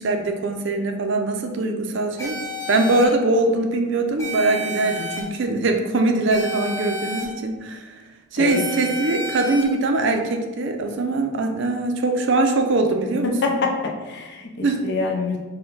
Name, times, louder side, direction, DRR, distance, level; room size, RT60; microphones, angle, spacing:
voice 1, 0.0-2.4 2.7-7.9 8.3-13.5 14.6-14.9, right 2 dB, 55° right, 4 dB, 0.5 m, -22 dB
sound 1, 2.2-3.1 4.2-5.2 6.3-7.2 8.5-9.6, left 1 dB, 15° left, 0.7 m, -31 dB
voice 2, 13.4-15.4, left 3 dB, 55° left, 1 dB, 0.6 m, -25 dB
5.7 x 2.2 x 3.9 m, 1.2 s
head